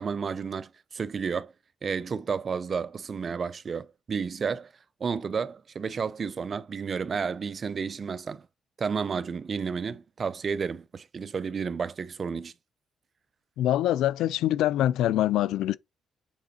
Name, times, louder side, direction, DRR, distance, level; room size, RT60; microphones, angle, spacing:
voice 1, 0.0-1.5 1.8-4.7 5.0-8.5 8.8-12.5, right 5 dB, 45° right, 0.6 m, -31 dB
voice 2, 13.6-15.8, left 13 dB, 85° left, 0.3 m, -24 dB
7.2 x 3.7 x 4.2 m
cardioid pair, 90°, 0 cm